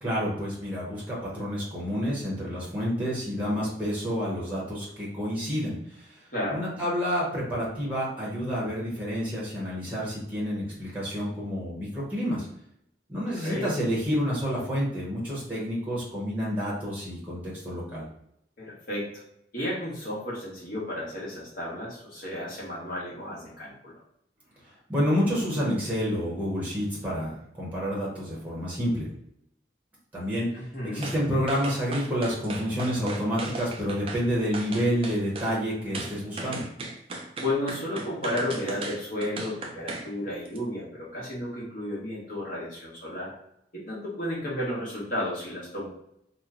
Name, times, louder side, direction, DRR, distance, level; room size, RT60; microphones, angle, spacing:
voice 1, 0.0-6.1 6.5-12.5 13.1-18.1 24.9-29.1 30.1-36.6, equal, 10° right, -6 dB, 0.9 m, -29 dB
voice 2, 6.3-6.6 13.4-13.7 18.6-19.1 19.5-23.9 30.5-31.1 37.4-43.3 43.7-45.9, left 1 dB, 50° left, -6 dB, 1.3 m, -33 dB
sound 1, 31.0-31.2 31.5-34.2 34.5-35.5 35.9-40.1 40.4-40.6, right 2 dB, 30° right, 0.4 m, -37 dB
3.0 x 2.2 x 3.7 m, 0.75 s
head